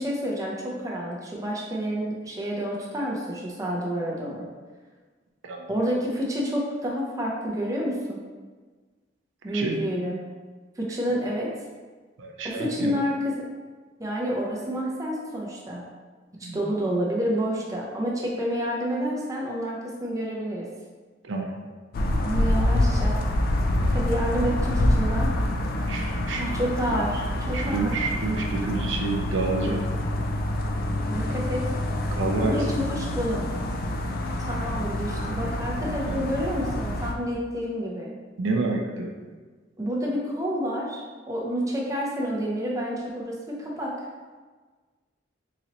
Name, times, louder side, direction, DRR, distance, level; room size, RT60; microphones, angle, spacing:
voice 1, 0.0-4.5 5.7-8.2 9.4-10.2 10.8-11.5 12.4-13.4 14.0-15.8 16.4-20.7 22.2-23.2 23.9-25.3 26.4-27.9 31.1-31.7 32.4-33.4 34.4-38.1 39.8-41.0 41.3-43.9, equal, 20° right, -3 dB, 0.6 m, -29 dB
voice 2, 12.2-12.9 16.4-16.6 21.2-21.6 25.9-26.5 27.5-29.9 32.1-32.6 36.1-36.3 38.4-39.1, right 3 dB, 80° right, 1 dB, 0.5 m, -28 dB
sound 1, 21.9-37.1, left 1 dB, 50° left, 0.4 m, -26 dB
3.9 x 3.0 x 2.9 m, 1.4 s
head